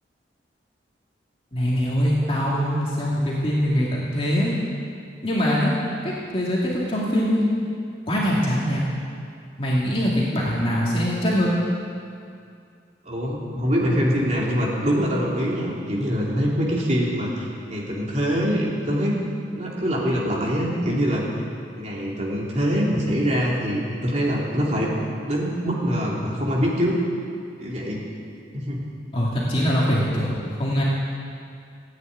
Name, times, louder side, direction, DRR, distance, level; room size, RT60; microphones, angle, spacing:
voice 1, 1.5-4.5 5.2-5.7 6.0-7.4 8.1-8.8 9.6-11.6 29.1-30.8, equal, 30° left, -6 dB, 2.4 m, -23 dB
voice 2, 13.0-19.1 19.5-21.2 21.8-24.9 25.2-27.0 27.6-28.0 28.5-28.8, equal, 40° right, -4 dB, 3.3 m, -24 dB
16.0 x 9.6 x 9.3 m, 2.4 s
head